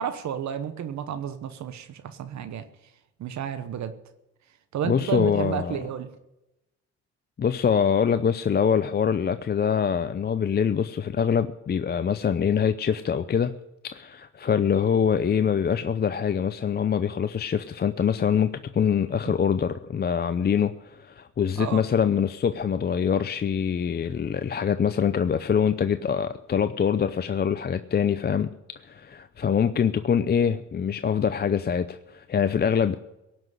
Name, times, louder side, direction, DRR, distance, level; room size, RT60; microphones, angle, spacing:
voice 1, 0.0-2.6 3.2-3.9 4.7-6.1 19.3-19.4 21.6-21.8, right 8 dB, 65° right, 11 dB, 1.1 m, -31 dB
voice 2, 4.8-5.8 7.4-13.5 13.9-28.5 28.8-32.9, left 7 dB, 35° left, 11 dB, 0.6 m, -24 dB
17.5 x 6.0 x 9.3 m, 0.92 s
cardioid pair, 90°, 30 cm